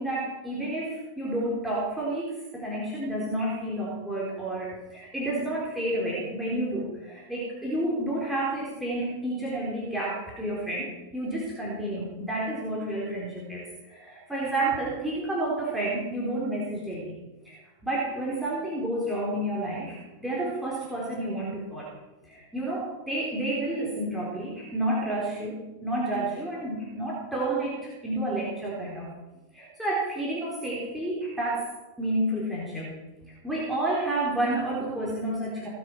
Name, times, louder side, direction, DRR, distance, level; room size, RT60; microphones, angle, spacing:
voice 1, 0.0-17.1 17.4-21.9 22.3-29.1 29.5-31.7 32.0-33.0 33.2-35.7, right 1 dB, 5° right, -7 dB, 4.0 m, -30 dB
18.0 x 8.0 x 6.1 m, 1.1 s
figure-of-eight pair, 90°, 0 cm